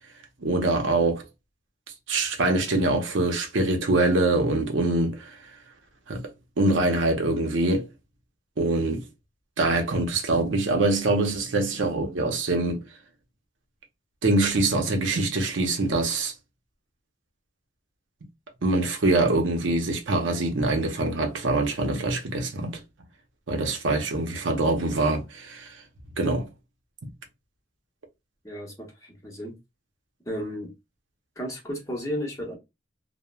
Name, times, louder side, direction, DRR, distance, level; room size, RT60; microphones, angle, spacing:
voice 1, 0.4-1.3 2.1-5.4 6.1-6.3 6.6-7.9 8.6-9.0 9.6-12.8 14.2-16.3 18.6-22.8 23.5-25.8 26.2-26.5, right 2 dB, 80° right, 0.6 m, -24 dB
voice 2, 28.4-29.5 30.2-30.7 31.4-32.6, equal, 15° left, 0.8 m, -33 dB
3.0 x 2.0 x 2.2 m
head